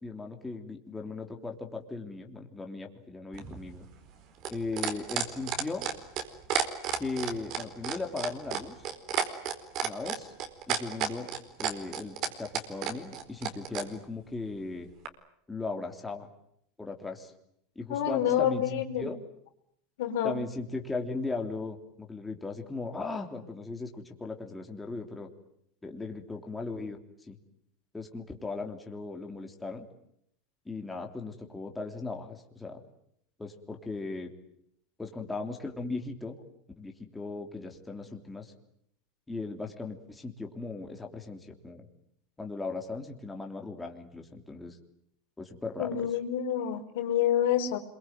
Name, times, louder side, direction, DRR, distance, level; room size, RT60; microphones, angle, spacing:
voice 1, 0.0-3.8 4.5-5.9 7.0-8.9 9.8-10.3 10.7-11.3 11.6-14.9 15.5-16.3 16.8-17.3 17.7-19.2 20.2-25.3 25.8-27.0 27.3-27.4 27.9-29.9 30.6-32.8 33.4-34.3 35.0-36.4 36.8-38.5 39.3-41.9 42.4-44.8 45.4-46.2, left 3 dB, 10° left, 2 dB, 3.2 m, -37 dB
sound 1, 3.3-13.9 15.1-15.2, right 9 dB, 50° right, 4.2 m, -31 dB
voice 2, 17.9-19.1 20.0-20.3 45.8-47.8, left 10 dB, 80° left, 6 dB, 4.1 m, -28 dB
27.0 x 23.0 x 9.3 m, 0.74 s
supercardioid pair, 140°, 0 cm